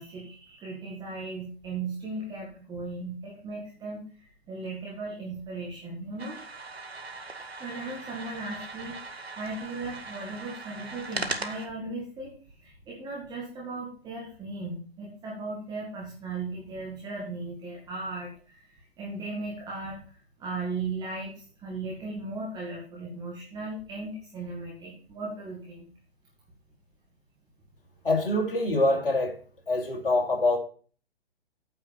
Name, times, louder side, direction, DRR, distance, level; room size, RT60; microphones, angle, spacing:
voice 1, 0.0-6.4 7.6-12.3 12.6-25.9, right 3 dB, 15° right, 2.1 m, -37 dB
sound 1, 6.2-11.7, right 3 dB, 80° right, 1.4 m, -39 dB
voice 2, 28.0-29.3 29.7-30.6, left 2 dB, 60° left, 2.9 m, -24 dB
8.8 x 4.6 x 7.1 m
figure-of-eight pair, 125°, 31 cm